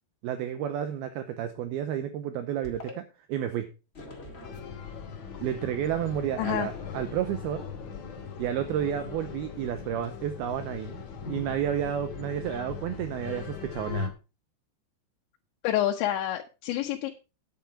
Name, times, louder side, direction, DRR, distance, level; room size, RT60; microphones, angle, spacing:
voice 1, 0.2-3.7 5.4-7.7 8.4-14.1, right 10 dB, 75° right, 9 dB, 2.4 m, -31 dB
sound 1, 2.6-2.9 3.9-5.1 6.4-6.9, left 2 dB, 30° left, 1.2 m, -44 dB
sound 2, 4.4-14.1, left 6 dB, 50° left, 2.5 m, -39 dB
voice 2, 6.4-6.7 15.6-17.1, left 12 dB, 85° left, 1 dB, 3.2 m, -28 dB
9.5 x 8.7 x 4.8 m, 0.31 s
omnidirectional pair, 5.1 m